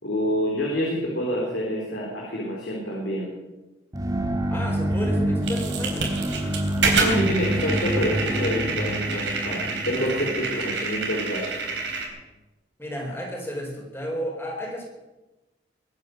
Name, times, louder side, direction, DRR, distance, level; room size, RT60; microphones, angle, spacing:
voice 1, 0.0-3.3 6.9-11.5 11.7-11.9, equal, 75° left, -3 dB, 4.2 m, -27 dB
sound 1, 3.9-11.7, right 1 dB, 20° right, 1.8 m, -27 dB
voice 2, 4.5-6.2 12.8-14.9, equal, 15° left, 0 dB, 4.4 m, -32 dB
sound 2, 5.4-12.1, right 4 dB, 80° right, 3.8 m, -28 dB
22.5 x 9.6 x 6.7 m, 1.1 s
head